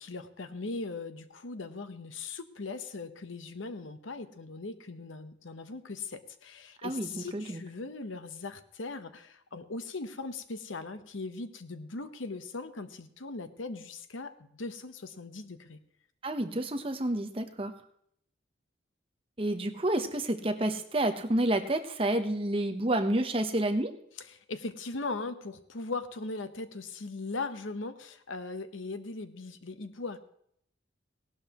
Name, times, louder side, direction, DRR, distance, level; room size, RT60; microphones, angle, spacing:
voice 1, 0.0-15.8 24.3-30.2, left 3 dB, 85° left, 10 dB, 1.0 m, -39 dB
voice 2, 6.8-7.6 16.2-17.7 19.4-23.9, right 1 dB, 30° right, 6 dB, 0.9 m, -29 dB
18.0 x 12.0 x 3.0 m, 0.69 s
head